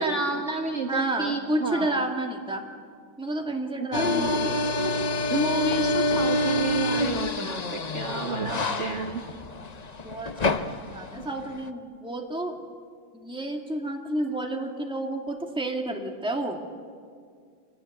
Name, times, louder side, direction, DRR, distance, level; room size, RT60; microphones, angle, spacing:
voice 1, 0.0-2.0 3.8-5.0 5.3-9.2, right 2 dB, 40° right, 2 dB, 1.6 m, -30 dB
voice 2, 0.9-2.6 3.2-4.6 8.3-9.2 10.0-12.6 13.1-16.6, right 1 dB, 5° right, 2 dB, 1.9 m, -31 dB
sound 1, 3.9-11.7, left 2 dB, 60° left, 0.4 m, -27 dB
26.0 x 19.0 x 9.5 m, 2.1 s
omnidirectional pair, 2.1 m